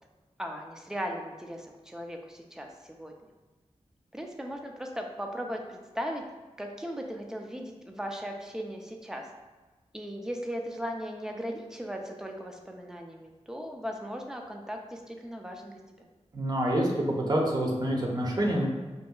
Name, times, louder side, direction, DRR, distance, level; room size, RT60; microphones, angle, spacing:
voice 1, 0.4-3.1 4.1-6.2 6.6-9.3 9.9-15.8, equal, 5° right, 2 dB, 0.5 m, -37 dB
voice 2, 16.3-16.9 17.2-18.7, right 1 dB, 35° right, -1 dB, 0.8 m, -27 dB
5.1 x 2.7 x 2.3 m, 1.3 s
wide cardioid pair, 75°, 12 cm